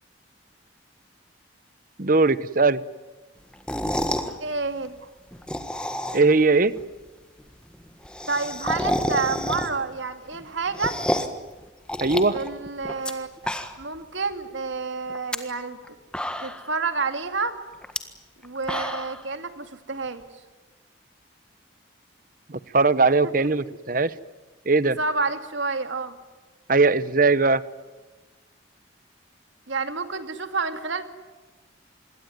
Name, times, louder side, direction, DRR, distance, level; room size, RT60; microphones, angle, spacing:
voice 1, 2.0-2.8 6.1-6.7 12.0-12.4 22.5-24.1 24.7-25.0 26.7-27.6, right 3 dB, 45° right, 16 dB, 0.9 m, -19 dB
sound 1, 3.5-4.3 5.3-6.4 6.8-6.9 7.1-7.2 7.4-7.5 7.7-9.9 10.3-11.4 11.9-13.1 13.4-14.0 14.3-14.4 15.1-15.4 15.8-15.9 16.1-16.8 17.8-18.0 18.4-19.2, left 1 dB, 5° left, 1.6 m, -29 dB
voice 2, 4.4-5.0 8.3-11.0 12.3-13.3 13.8-16.0 16.4-17.6 18.4-20.2 23.2-23.5 25.0-26.2 29.7-31.0, right 4 dB, 75° right, 8 dB, 2.4 m, -29 dB
27.0 x 21.5 x 9.5 m, 1.2 s
head